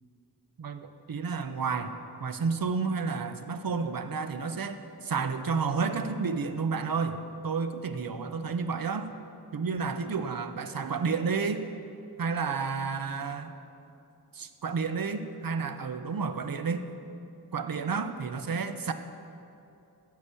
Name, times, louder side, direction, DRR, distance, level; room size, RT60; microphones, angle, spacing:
voice 1, 0.6-1.9 2.2-7.2 7.4-9.1 9.5-11.6 12.2-13.6 14.3-16.9 17.5-18.9, right 5 dB, 60° right, 9 dB, 0.7 m, -31 dB
9.8 x 6.7 x 6.8 m, 2.7 s
wide cardioid pair, 65°, 39 cm